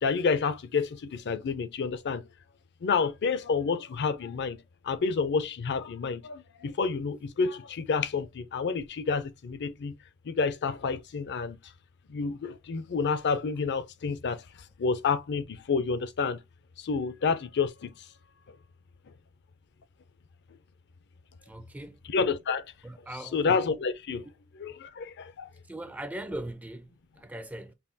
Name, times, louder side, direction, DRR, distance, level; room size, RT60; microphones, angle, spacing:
voice 1, 0.0-2.2 2.8-4.6 4.8-9.9 10.3-11.6 12.1-14.4 14.8-16.4 16.8-17.9 22.1-22.7 23.3-24.2 24.6-25.5, left 5 dB, 50° left, 0.4 m, -29 dB
voice 2, 21.4-22.0 22.8-23.4 25.6-27.7, right 1 dB, 5° right, 0.4 m, -40 dB
5.6 x 2.3 x 2.6 m
head